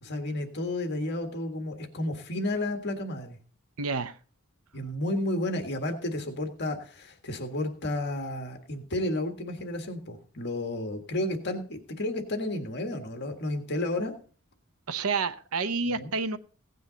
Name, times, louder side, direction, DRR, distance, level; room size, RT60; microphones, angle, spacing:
voice 1, 0.0-3.4 4.7-14.1 15.8-16.1, left 1 dB, 55° left, 5 dB, 1.7 m, -32 dB
voice 2, 3.8-4.2 14.9-16.4, right 4 dB, 80° right, 12 dB, 0.8 m, -29 dB
16.5 x 9.3 x 3.9 m, 0.40 s
head